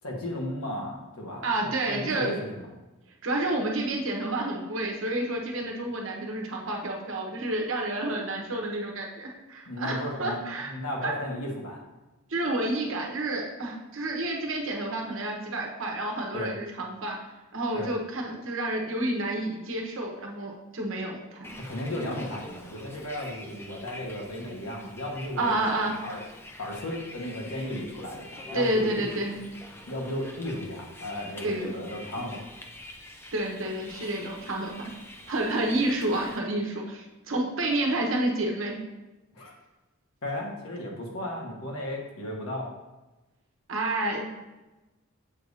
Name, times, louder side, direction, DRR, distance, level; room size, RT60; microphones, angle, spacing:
voice 1, 0.0-2.7 9.7-11.8 16.3-16.5 17.7-17.9 21.6-25.6 26.0-26.2 26.6-29.1 29.9-32.4 39.3-39.5 40.2-42.7, left 1 dB, 85° left, -1 dB, 1.3 m, -35 dB
voice 2, 1.4-2.3 3.2-10.7 11.0-11.1 12.3-17.2 17.5-21.5 25.4-26.0 28.5-29.3 31.4-31.7 33.3-34.9 35.3-38.8 43.7-44.3, right 1 dB, 65° right, 0 dB, 1.0 m, -29 dB
Bus, 21.4-36.4, left 1 dB, 10° left, 0.3 m, -46 dB
7.3 x 2.7 x 4.8 m, 1.1 s
head